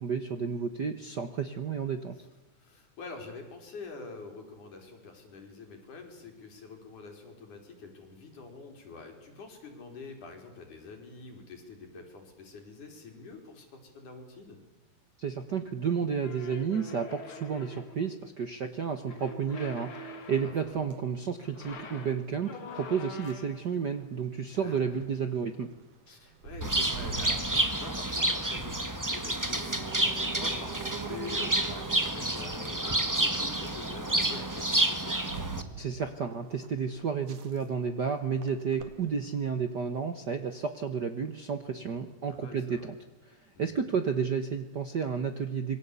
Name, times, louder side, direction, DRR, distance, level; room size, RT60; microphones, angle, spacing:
voice 1, 0.0-2.2 15.2-19.9 20.3-25.7 35.8-43.0 43.6-45.8, right 6 dB, 55° right, 9 dB, 1.2 m, -31 dB
voice 2, 2.6-14.6 20.4-20.8 24.6-25.0 26.1-35.2 41.7-42.0 42.3-42.9 43.5-43.9, left 4 dB, 80° left, 3 dB, 5.7 m, -46 dB
sound 1, 16.2-18.1 19.0-20.8 21.4-23.7, left 2 dB, 45° left, 3.1 m, -44 dB
sound 2, 20.6-39.5, right 5 dB, 80° right, 3.4 m, -45 dB
Bird, 26.6-35.6, right 1 dB, 15° right, 0.7 m, -29 dB
27.0 x 22.5 x 8.4 m, 1.1 s
omnidirectional pair, 3.5 m